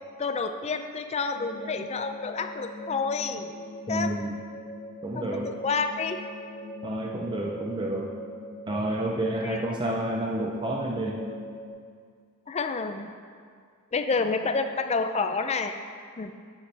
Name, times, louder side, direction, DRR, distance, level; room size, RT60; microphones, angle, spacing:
voice 1, 0.2-3.5 3.9-4.2 5.1-6.2 9.4-9.6 12.5-13.1 13.9-15.8 16.2-16.3, left 4 dB, 30° left, 8 dB, 0.4 m, -29 dB
sound 1, 1.3-11.7, left 1 dB, 45° left, 1.7 m, -41 dB
voice 2, 3.9-4.4 5.0-5.5 6.8-8.1 8.7-11.2, right 1 dB, 20° right, 0 dB, 0.5 m, -30 dB
11.0 x 7.3 x 3.4 m, 2.1 s
head